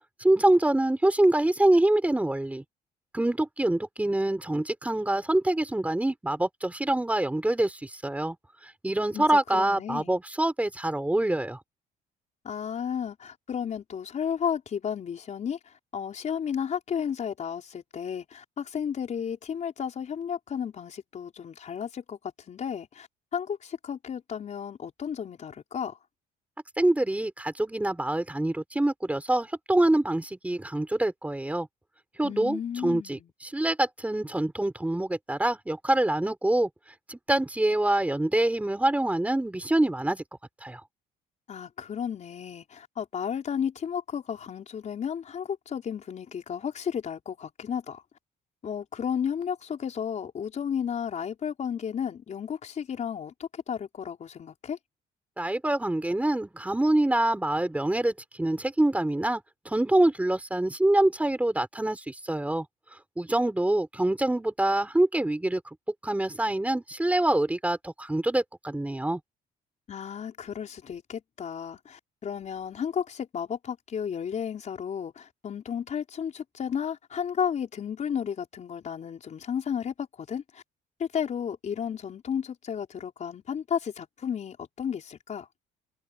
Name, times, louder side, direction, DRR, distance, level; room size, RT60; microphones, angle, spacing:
voice 1, 0.2-2.6 3.1-8.4 8.6-11.6 26.8-31.7 32.2-36.7 37.1-40.2 40.6-40.8 55.4-62.7 63.2-65.7 66.0-69.2, right 1 dB, 10° right, 4.5 m, -25 dB
voice 2, 9.1-10.1 12.4-26.0 32.2-33.3 41.5-48.0 48.6-54.8 69.9-80.6 81.0-85.5, left 8 dB, 45° left, 4.7 m, -33 dB
cardioid pair, 110°, 17 cm